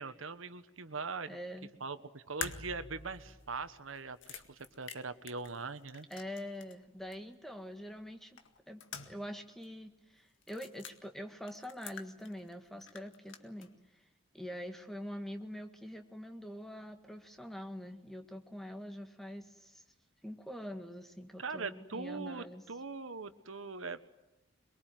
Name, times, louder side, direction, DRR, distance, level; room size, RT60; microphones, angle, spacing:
voice 1, 0.0-1.4 1.8-6.1 21.4-24.0, right 4 dB, 80° right, 12 dB, 1.4 m, -41 dB
voice 2, 1.3-1.7 6.1-8.4 8.7-14.0 14.3-19.8 20.2-22.6, equal, ahead, 5 dB, 1.8 m, -45 dB
sound 1, 2.4-6.8 7.1-7.2 8.4-9.4 9.6-9.7 10.4-11.0 11.5-12.5 12.8-13.7, left 6 dB, 70° left, 1.9 m, -47 dB
23.5 x 22.5 x 9.3 m, 0.94 s
head